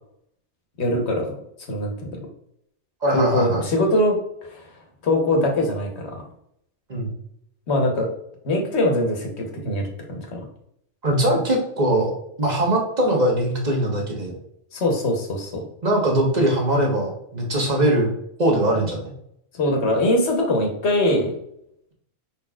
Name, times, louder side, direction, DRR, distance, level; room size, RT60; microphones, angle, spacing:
voice 1, 0.8-1.3 1.7-2.3 3.1-4.2 4.5-4.6 5.0-6.2 7.7-8.1 8.4-10.4 14.7-15.6 19.5-21.4, left 1 dB, 60° left, 2 dB, 1.3 m, -22 dB
voice 2, 3.0-3.7 6.9-7.1 11.0-12.1 12.4-14.3 15.8-18.1 18.4-19.1, right 1 dB, 35° right, 0 dB, 1.2 m, -21 dB
5.2 x 4.3 x 2.4 m, 0.73 s
omnidirectional pair, 1.3 m